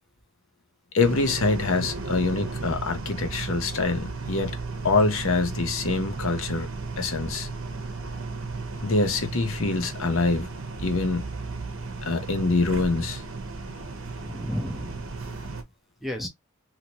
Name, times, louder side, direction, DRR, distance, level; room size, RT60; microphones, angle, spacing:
voice 1, 0.9-4.6 4.8-6.7 7.0-7.5 8.8-10.5 10.8-11.3 12.0-13.2, left 3 dB, 60° left, 0.7 m, -25 dB
sound 1, 1.0-15.6, right 3 dB, 60° right, 0.8 m, -35 dB
voice 2, 1.8-2.3 4.3-4.4 11.8-12.1 14.2-15.1 16.0-16.3, left 1 dB, ahead, 0.6 m, -35 dB
2.9 x 2.8 x 2.9 m
head